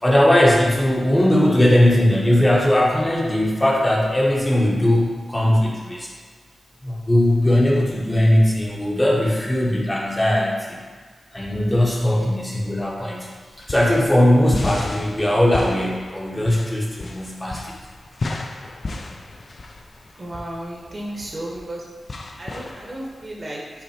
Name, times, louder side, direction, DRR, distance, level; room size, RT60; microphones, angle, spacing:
voice 1, 0.0-6.1 6.8-10.8 11.3-13.3 13.7-17.6, left 1 dB, 15° left, -3 dB, 0.8 m, -19 dB
sound 1, 13.4-23.3, left 3 dB, 50° left, 0.4 m, -33 dB
voice 2, 20.1-21.8 22.4-23.8, right 1 dB, 35° right, -3 dB, 0.9 m, -34 dB
5.7 x 2.1 x 4.3 m, 1.5 s
cardioid pair, 80°, 0 cm